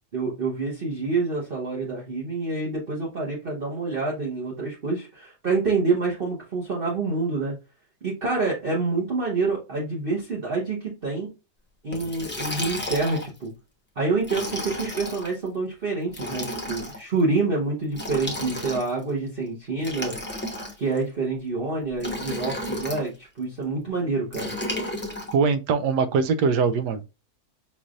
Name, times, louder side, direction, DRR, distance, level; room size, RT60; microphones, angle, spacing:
voice 1, 0.1-7.6 8.0-11.3 11.8-13.5 14.0-20.2 20.8-24.5, right 3 dB, 40° right, 1.1 m, -27 dB
Liquid, 11.9-13.4 14.2-15.3 16.1-17.0 17.9-19.0 19.8-21.0 22.0-23.1 24.3-25.3, left 1 dB, 10° left, 0.7 m, -32 dB
voice 2, 25.3-27.0, right 5 dB, 85° right, 1.2 m, -22 dB
5.4 x 3.3 x 2.4 m
omnidirectional pair, 1.8 m